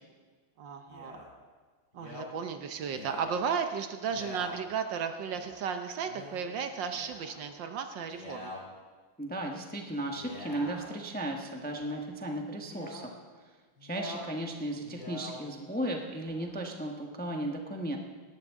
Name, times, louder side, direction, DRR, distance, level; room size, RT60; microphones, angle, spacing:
voice 1, 0.6-1.2 1.9-8.5, right 6 dB, 65° right, 7 dB, 1.4 m, -34 dB
Male speech man speaking, 0.9-1.3 1.9-2.3 2.8-3.3 4.0-4.6 5.3-5.6 6.1-6.4 6.9-7.5 8.0-8.6 10.0-10.9 11.6-12.0 12.6-13.1 13.8-14.3 14.7-15.4 16.1-16.6, left 2 dB, 60° left, 3.9 m, -45 dB
voice 2, 9.2-13.1 13.8-18.0, right 1 dB, 5° left, 2 dB, 0.7 m, -35 dB
18.5 x 13.0 x 3.6 m, 1.5 s
omnidirectional pair, 2.3 m